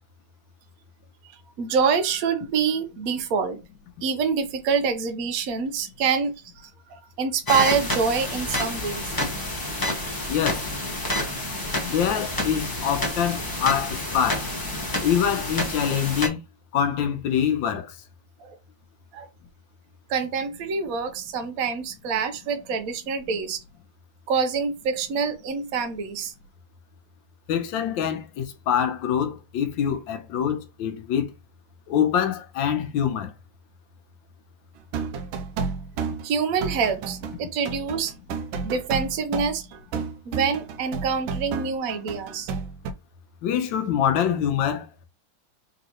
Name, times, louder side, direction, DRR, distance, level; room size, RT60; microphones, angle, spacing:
voice 1, 1.6-3.6 4.0-9.0 18.4-18.6 19.1-19.3 20.1-23.6 24.3-26.3 36.2-38.1 38.6-39.7 40.3-42.5, right 6 dB, 65° right, 0.9 m, -26 dB
sound 1, 7.5-16.3, left 1 dB, 20° left, 0.5 m, -29 dB
voice 2, 10.3-10.7 11.8-14.5 15.0-16.4 16.7-17.9 27.5-31.3 31.9-33.3 43.4-44.9, left 8 dB, 75° left, 1.4 m, -25 dB
sound 2, 34.8-42.9, right 5 dB, 80° right, 1.4 m, -31 dB
3.9 x 3.8 x 2.9 m
omnidirectional pair, 2.2 m